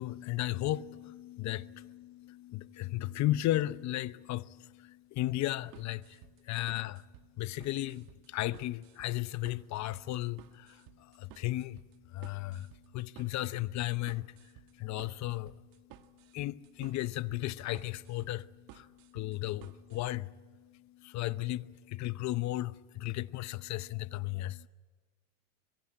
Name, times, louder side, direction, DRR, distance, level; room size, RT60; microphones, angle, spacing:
voice 1, 0.0-7.0 7.4-24.7, left 16 dB, 50° left, 0.9 m, -35 dB
sound 1, 5.3-20.0, right 13 dB, 65° right, 1.6 m, -56 dB
25.0 x 22.5 x 8.8 m
cardioid pair, 125°, 37 cm